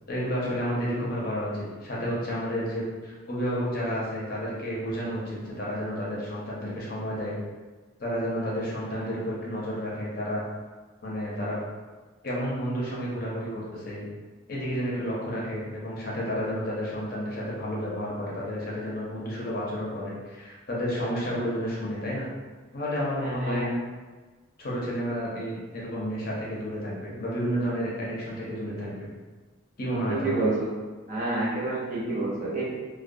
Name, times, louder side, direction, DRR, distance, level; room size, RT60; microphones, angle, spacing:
voice 1, 0.1-7.3 8.0-10.4 11.0-11.6 12.2-14.0 14.5-22.3 22.7-23.7 24.6-29.1 29.8-30.4, equal, 45° left, -5 dB, 0.6 m, -31 dB
voice 2, 23.2-23.7 30.1-30.7 31.1-32.6, right 2 dB, 40° right, -6 dB, 0.6 m, -29 dB
2.2 x 2.1 x 2.5 m, 1.3 s
head